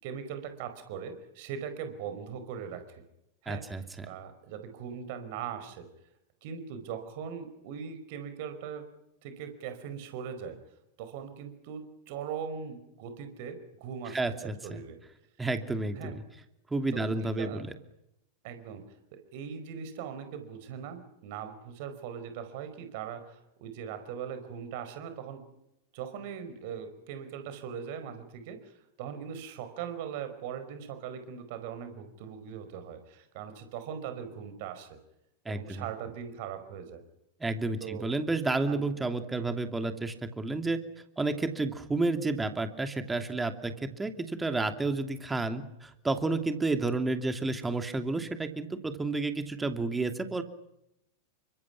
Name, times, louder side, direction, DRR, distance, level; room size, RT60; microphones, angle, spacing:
voice 1, 0.0-3.0 3.4-5.9 6.4-8.8 9.2-10.6 11.0-15.0 16.0-16.2 16.9-17.6 18.4-18.8 19.1-25.4 25.9-34.9 35.5-37.0 37.8-38.1 38.7-38.9, right 7 dB, 50° right, 9 dB, 5.0 m, -40 dB
voice 2, 3.5-4.1 14.1-14.6 15.4-16.2 16.7-17.7 35.4-35.9 37.4-40.8 41.2-50.4, right 3 dB, 10° right, 8 dB, 2.7 m, -31 dB
30.0 x 25.5 x 6.1 m, 0.85 s
figure-of-eight pair, 90°, 0 cm